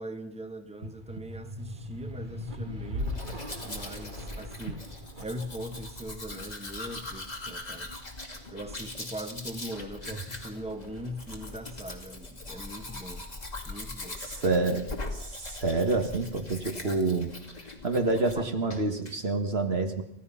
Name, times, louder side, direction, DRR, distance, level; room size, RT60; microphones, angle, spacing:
voice 1, 0.0-4.8 5.2-7.9 8.5-13.3 13.6-14.2 18.3-18.4, equal, 5° right, 7 dB, 1.4 m, -41 dB
sound 1, 0.8-13.3, equal, 45° right, 2.0 m, -42 dB
Domestic sounds home sounds, 3.0-18.4 18.7-19.2, left 2 dB, 35° left, 2.6 m, -41 dB
voice 2, 14.2-17.3 17.8-20.0, right 3 dB, 65° right, 6 dB, 2.0 m, -28 dB
30.0 x 15.5 x 5.7 m, 0.75 s
omnidirectional pair, 1.1 m